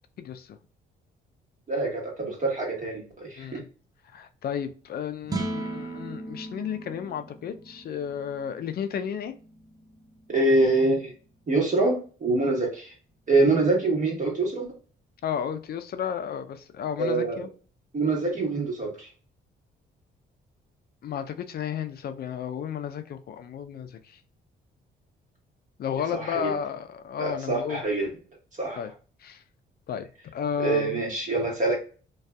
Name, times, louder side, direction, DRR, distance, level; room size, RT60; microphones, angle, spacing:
voice 1, 0.2-0.6 3.4-3.6 4.1-9.3 15.2-17.5 21.0-24.2 25.8-27.8 28.8-28.9 29.2-29.4 29.9-30.1 30.3-31.0, left 8 dB, 50° left, 0.4 m, -32 dB
voice 2, 1.7-3.6 10.3-11.1 11.5-12.9 13.3-14.7 17.0-17.5 17.9-19.1 26.1-26.5 27.2-28.1 28.6-28.8 30.6-31.8, right 2 dB, 40° right, 1.3 m, -25 dB
sound 1, 5.2-11.6, right 2 dB, 20° right, 0.5 m, -38 dB
2.6 x 2.3 x 2.2 m
cardioid pair, 90°, 20 cm